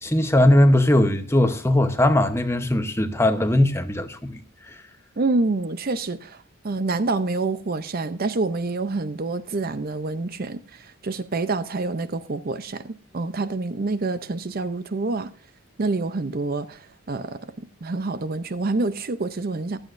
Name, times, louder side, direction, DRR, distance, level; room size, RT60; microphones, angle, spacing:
voice 1, 0.0-4.4, left 1 dB, 10° left, 0.9 m, -19 dB
voice 2, 5.2-15.3 15.8-19.8, right 3 dB, 40° right, 0.6 m, -27 dB
15.5 x 11.5 x 2.6 m
head